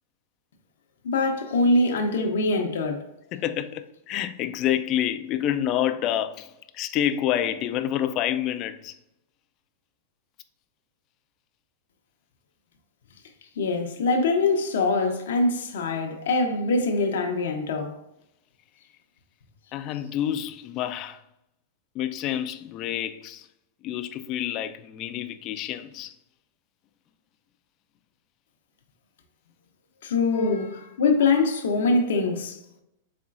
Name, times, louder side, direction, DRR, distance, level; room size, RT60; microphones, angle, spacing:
voice 1, 1.0-3.0 13.6-17.9 30.0-32.6, left 3 dB, 75° left, 0.7 m, -23 dB
voice 2, 3.3-8.9 19.7-21.2 21.9-23.5 23.8-26.1 30.3-30.6, left 11 dB, 40° left, 0.4 m, -28 dB
4.3 x 3.7 x 2.5 m
hypercardioid pair, 125°, 0 cm